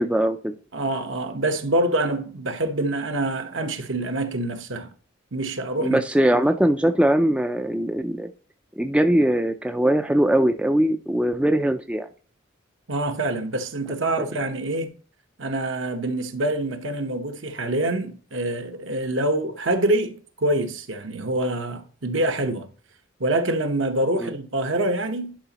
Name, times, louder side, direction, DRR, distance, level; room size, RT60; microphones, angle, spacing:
voice 1, 0.0-0.5 5.8-8.3 8.8-12.1 24.2-24.3, right 1 dB, 5° right, 0.3 m, -21 dB
voice 2, 0.7-4.9 5.3-6.0 12.9-14.9 15.4-22.7 23.2-25.4, right 1 dB, 65° right, 1.0 m, -25 dB
10.5 x 4.9 x 2.9 m
head